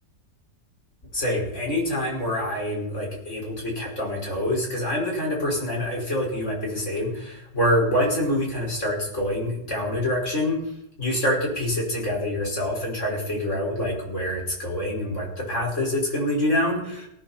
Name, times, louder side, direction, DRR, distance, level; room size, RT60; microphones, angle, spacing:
voice 1, 1.1-10.6 11.0-17.1, left 1 dB, 40° left, -2 dB, 5.9 m, -26 dB
18.5 x 16.5 x 4.4 m, 0.77 s
omnidirectional pair, 1.8 m